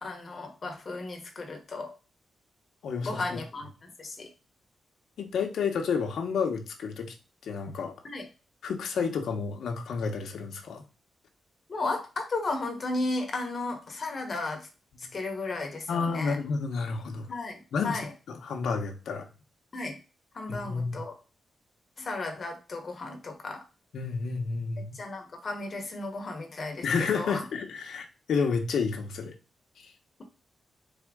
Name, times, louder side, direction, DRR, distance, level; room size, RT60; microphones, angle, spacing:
voice 1, 0.0-1.9 3.0-4.3 8.0-8.3 11.7-14.7 15.0-16.4 17.3-18.1 19.7-20.0 20.3-21.2 22.0-23.6 24.9-27.4, left 2 dB, 35° left, 4 dB, 1.1 m, -34 dB
voice 2, 2.8-3.4 5.2-7.1 7.4-7.9 8.6-10.8 14.9-15.1 15.9-17.3 17.7-18.0 18.3-19.3 20.5-21.0 23.9-25.0 26.8-29.3, left 5 dB, 75° left, 4 dB, 0.9 m, -30 dB
4.3 x 3.5 x 3.5 m, 0.33 s
wide cardioid pair, 150°, 0 cm